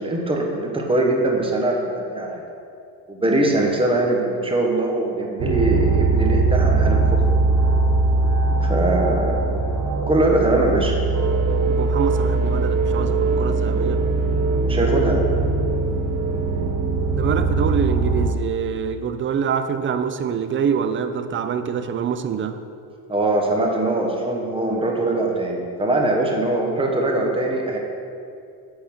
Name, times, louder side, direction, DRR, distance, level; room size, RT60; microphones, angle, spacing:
voice 1, 0.0-2.4 3.1-7.0 8.6-9.6 10.1-10.9 14.6-15.3 23.1-27.8, right 2 dB, 10° right, 0 dB, 1.1 m, -22 dB
sound 1, 5.4-18.3, right 3 dB, 45° right, 1.1 m, -20 dB
voice 2, 11.7-14.0 17.2-22.6, right 7 dB, 30° right, 10 dB, 0.4 m, -25 dB
8.3 x 4.0 x 6.1 m, 2.5 s
cardioid pair, 100°, 44 cm